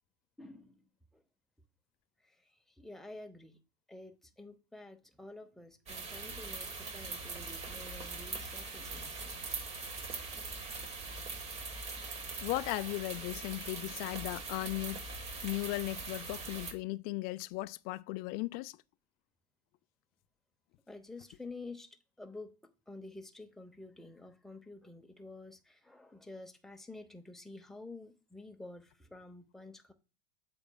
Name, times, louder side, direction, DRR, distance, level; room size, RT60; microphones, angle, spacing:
voice 1, 0.4-1.2 2.2-3.6 3.9-9.7 20.9-22.5 22.9-29.9, left 2 dB, ahead, 0.7 m, -50 dB
sound 1, 5.9-16.7, right 3 dB, 30° right, 1.4 m, -42 dB
voice 2, 12.4-15.0 15.4-18.8, left 19 dB, 45° left, 0.4 m, -37 dB
7.8 x 6.0 x 2.3 m
supercardioid pair, 115°, 21 cm